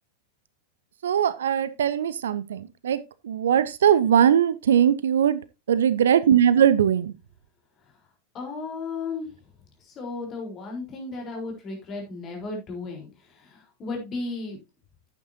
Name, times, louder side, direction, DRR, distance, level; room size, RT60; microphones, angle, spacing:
voice 1, 1.0-5.4 5.7-7.1, right 9 dB, 65° right, 0.6 m, -20 dB
voice 2, 8.3-9.3 9.8-14.6, left 3 dB, 30° left, 4.1 m, -34 dB
11.0 x 8.7 x 2.8 m
figure-of-eight pair, 90°, 0 cm